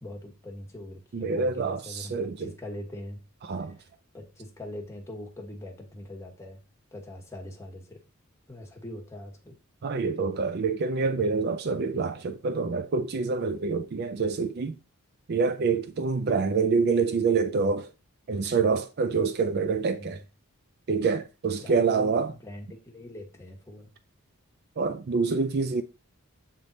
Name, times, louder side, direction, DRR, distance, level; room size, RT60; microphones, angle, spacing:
voice 1, 0.0-3.2 3.6-3.8 4.1-6.6 6.9-8.0 8.5-9.6 19.8-20.2 21.6-23.9, left 1 dB, 10° left, 1.3 m, -42 dB
voice 2, 1.1-2.5 3.4-3.8 9.8-14.8 15.3-17.9 18.3-20.2 20.9-22.3 24.8-25.8, right 4 dB, 45° right, 0.4 m, -26 dB
7.6 x 3.5 x 4.0 m
head